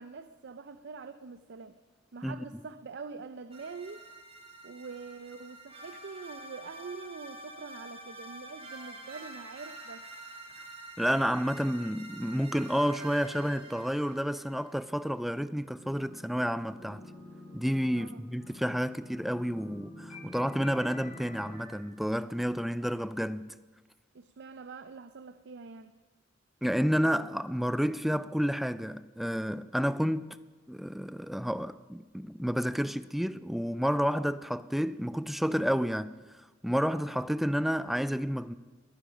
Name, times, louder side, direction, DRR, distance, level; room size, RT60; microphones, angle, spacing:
voice 1, 0.0-1.8 2.1-4.1 4.6-10.1 17.9-18.2 24.1-25.9, right 4 dB, 60° right, 0.5 m, -44 dB
sound 1, 3.5-14.8, right 2 dB, 30° right, 2.3 m, -47 dB
voice 2, 11.0-17.0 17.5-23.5 26.6-30.4 30.7-36.2 36.6-38.5, equal, ahead, 0.3 m, -30 dB
sound 2, 15.8-16.4 16.7-21.7, left 1 dB, 45° left, 4.2 m, -48 dB
22.0 x 10.0 x 5.1 m
head